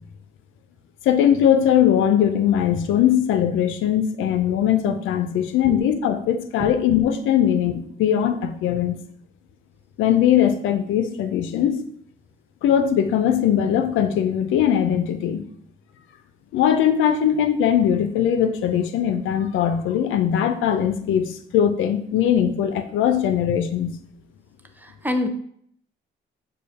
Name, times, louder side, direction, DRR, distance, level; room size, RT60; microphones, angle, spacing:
voice 1, 1.1-9.0 10.0-11.8 12.6-15.4 16.5-24.0, left 9 dB, 85° left, 9 dB, 0.5 m, -20 dB
voice 2, 24.8-25.3, left 1 dB, 10° right, 5 dB, 0.5 m, -25 dB
6.6 x 2.3 x 3.4 m, 0.66 s
cardioid pair, 90°, 20 cm